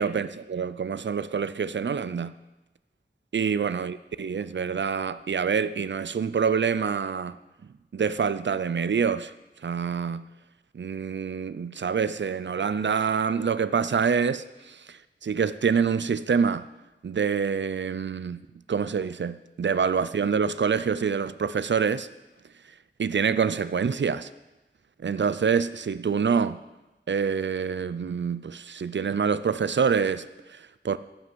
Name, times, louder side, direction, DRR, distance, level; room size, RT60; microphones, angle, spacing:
voice 1, 0.0-2.4 3.3-7.4 7.9-9.3 9.6-10.3 10.7-16.7 17.0-22.1 23.0-24.3 25.0-26.6 27.1-31.0, right 6 dB, 75° right, 0.4 m, -26 dB
14.5 x 5.6 x 6.1 m
wide cardioid pair, 45°, 19 cm